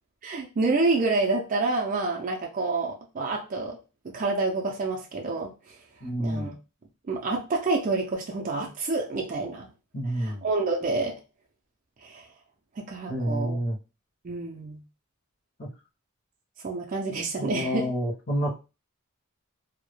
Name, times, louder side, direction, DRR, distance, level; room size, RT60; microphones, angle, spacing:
voice 1, 0.2-3.8 4.0-5.7 6.2-6.5 7.1-9.7 10.2-11.1 12.0-12.3 12.8-13.6 14.2-14.8 16.6-17.9, right 3 dB, 35° right, 0 dB, 0.4 m, -28 dB
voice 2, 6.0-6.5 9.9-10.5 13.1-13.8 15.6-15.7 17.4-18.5, equal, 40° left, -3 dB, 0.6 m, -29 dB
2.2 x 2.0 x 3.1 m, 0.31 s
head